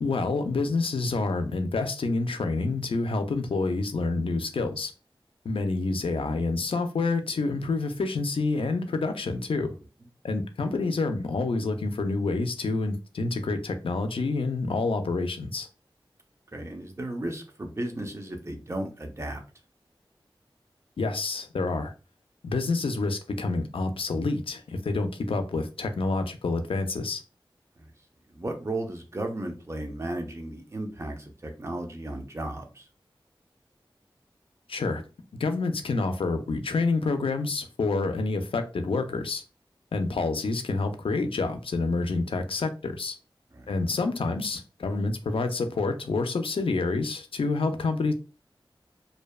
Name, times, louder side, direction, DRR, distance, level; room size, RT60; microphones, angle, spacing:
voice 1, 0.0-4.9 5.4-9.7 10.2-15.7 21.0-21.9 22.4-27.2 34.7-35.0 35.4-39.4 39.9-43.2 43.7-48.1, left 3 dB, 85° left, 0.4 m, -28 dB
voice 2, 16.5-19.4 27.8-27.9 28.3-32.9 43.5-43.7, right 1 dB, 30° right, 0.6 m, -35 dB
2.6 x 2.1 x 2.2 m
wide cardioid pair, 60°, 9 cm